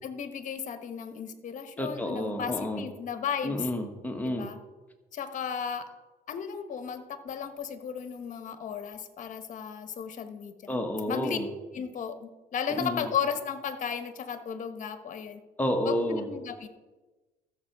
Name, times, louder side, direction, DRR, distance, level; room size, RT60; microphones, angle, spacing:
voice 1, 0.0-3.6 4.2-4.6 5.1-5.9 6.3-10.8 11.1-11.4 11.7-15.4 15.8-16.7, left 7 dB, 50° left, 9 dB, 1.2 m, -35 dB
voice 2, 1.8-2.8 3.4-4.5 10.7-11.5 12.7-13.1 15.6-16.3, left 1 dB, 10° left, 3 dB, 1.5 m, -30 dB
13.5 x 7.0 x 4.7 m, 1.2 s
cardioid pair, 110°, 17 cm